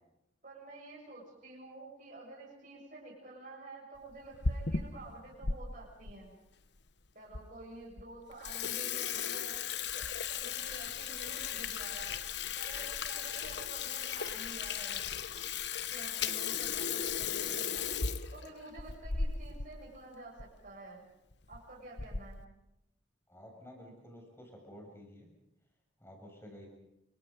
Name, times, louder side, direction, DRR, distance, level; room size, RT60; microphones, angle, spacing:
voice 1, 0.4-6.4 7.1-9.6 9.9-12.1 12.6-15.0 15.9-17.9 18.3-21.1 21.5-22.5, right 2 dB, 40° right, -3 dB, 7.1 m, -50 dB
Water tap faucet / Sink (filling or washing), 4.1-5.6 6.1-6.2 6.9-7.0 7.3-7.4 7.8-8.0 8.3-19.7 20.0-20.1 20.4-20.5 21.3-21.6 22.0-22.4, left 6 dB, 60° left, 1.2 m, -36 dB
voice 2, 23.3-25.3 26.0-26.7, equal, 15° left, 1 dB, 6.7 m, -51 dB
29.5 x 24.5 x 5.3 m, 0.86 s
head